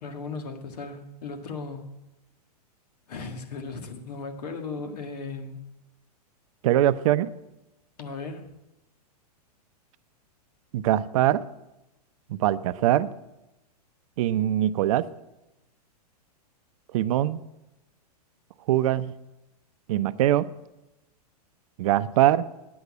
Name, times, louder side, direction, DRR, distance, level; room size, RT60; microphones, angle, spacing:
voice 1, 0.0-1.9 3.1-5.6 8.0-8.5, left 4 dB, 70° left, 7 dB, 1.7 m, -36 dB
voice 2, 6.6-7.3 10.7-11.4 12.3-13.1 14.2-15.1 16.9-17.4 18.7-19.1 19.9-20.5 21.8-22.5, right 13 dB, 55° right, 14 dB, 0.6 m, -22 dB
9.6 x 8.0 x 8.4 m, 0.96 s
hypercardioid pair, 120°, 21 cm